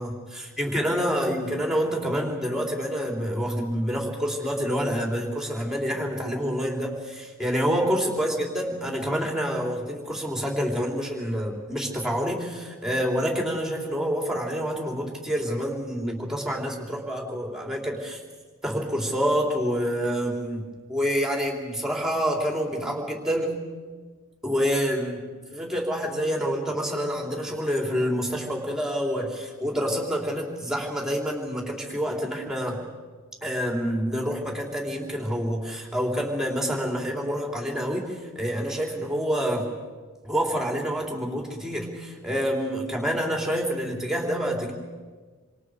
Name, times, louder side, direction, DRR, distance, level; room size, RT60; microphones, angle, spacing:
voice 1, 0.0-18.2 18.6-23.6 24.4-25.2 25.5-32.8 33.4-39.7 40.2-44.7, equal, 5° right, 0 dB, 3.6 m, -27 dB
28.0 x 26.5 x 5.0 m, 1.4 s
head